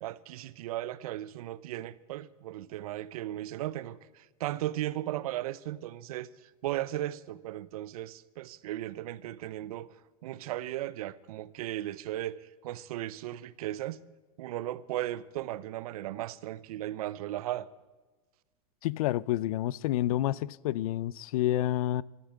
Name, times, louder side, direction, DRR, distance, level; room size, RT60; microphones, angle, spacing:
voice 1, 0.0-9.9 10.2-14.0 14.4-17.7, right 14 dB, 75° right, 0.7 m, -36 dB
voice 2, 18.8-22.0, left 13 dB, 70° left, 0.4 m, -29 dB
13.5 x 11.5 x 7.7 m
supercardioid pair, 160°, 19 cm